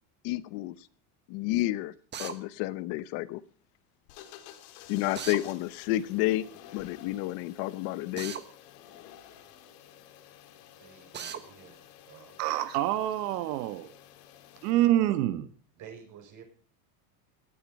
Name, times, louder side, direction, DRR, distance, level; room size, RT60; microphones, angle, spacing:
voice 1, 0.2-0.8 1.3-1.9 2.2-3.4 4.9-6.5 6.7-8.3, left 16 dB, 55° left, 16 dB, 0.9 m, -30 dB
Drill, 2.1-2.4 5.2-5.4 8.2-8.5 11.1-11.4, right 8 dB, 20° right, 1.3 m, -37 dB
sound 1, 4.1-14.7, left 11 dB, 75° left, 3.1 m, -52 dB
voice 2, 10.7-12.6 14.7-14.9 15.8-16.4, right 8 dB, 40° right, 5 dB, 5.3 m, -51 dB
voice 3, 12.4-13.9 14.6-15.5, right 13 dB, 80° right, 11 dB, 1.4 m, -26 dB
17.5 x 13.5 x 5.3 m, 0.41 s
cardioid pair, 155°, 48 cm